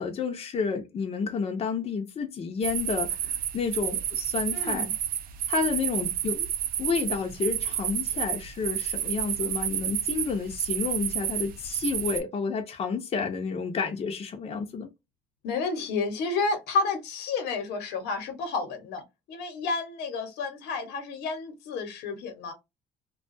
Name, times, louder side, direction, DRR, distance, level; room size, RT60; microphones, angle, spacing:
voice 1, 0.0-4.9 5.5-6.5 6.8-14.9, left 5 dB, 35° left, 0.6 m, -30 dB
sound 1, 2.6-12.2, right 10 dB, 60° right, 0.4 m, -30 dB
voice 2, 4.5-4.9 15.4-22.5, left 4 dB, 80° left, 0.9 m, -31 dB
2.3 x 2.2 x 2.5 m
cardioid pair, 110°, 17 cm